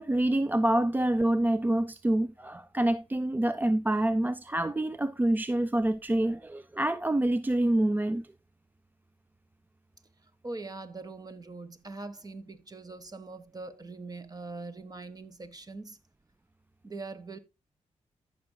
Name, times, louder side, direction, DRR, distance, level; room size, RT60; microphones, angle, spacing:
voice 1, 0.0-8.3, right 1 dB, 15° right, 0.4 m, -27 dB
voice 2, 10.4-16.0 16.8-17.4, right 3 dB, 30° right, 1.3 m, -42 dB
14.5 x 6.0 x 2.2 m
cardioid pair, 70°, 12 cm